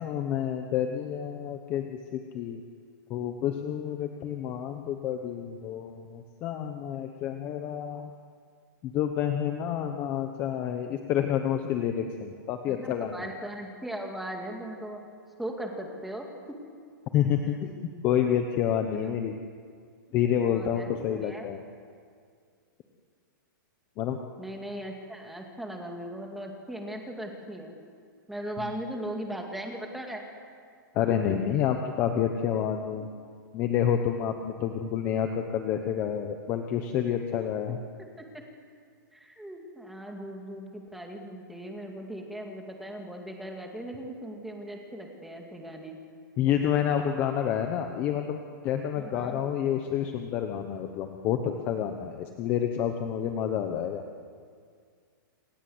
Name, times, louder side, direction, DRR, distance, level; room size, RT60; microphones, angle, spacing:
voice 1, 0.0-2.6 3.1-8.1 8.8-13.1 17.1-17.6 18.0-19.4 20.1-21.6 24.0-24.2 30.9-33.1 33.5-37.8 46.4-54.0, left 9 dB, 15° left, 5 dB, 1.0 m, -29 dB
voice 2, 12.7-15.0 15.4-16.3 17.6-17.7 19.0-19.1 20.5-21.5 24.4-27.7 28.3-30.2 31.3-31.4 33.0-33.1 38.2-38.3 39.1-46.0 48.9-49.4, right 1 dB, ahead, 1 dB, 2.2 m, -38 dB
28.0 x 26.5 x 8.0 m, 2.1 s
hypercardioid pair, 180°, 11 cm